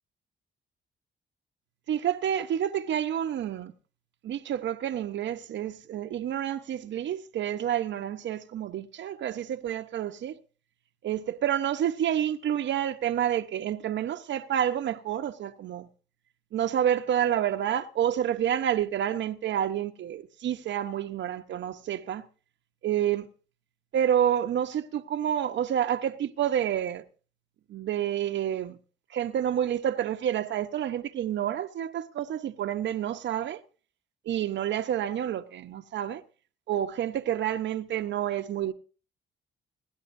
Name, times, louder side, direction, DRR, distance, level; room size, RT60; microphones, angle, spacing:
voice 1, 1.9-3.7 4.2-10.4 11.0-15.9 16.5-22.2 22.8-23.3 23.9-27.0 27.7-28.8 29.1-33.6 34.3-36.2 36.7-38.7, right 10 dB, 70° right, 1.0 m, -29 dB
29.5 x 10.5 x 2.7 m
cardioid pair, 90°, 20 cm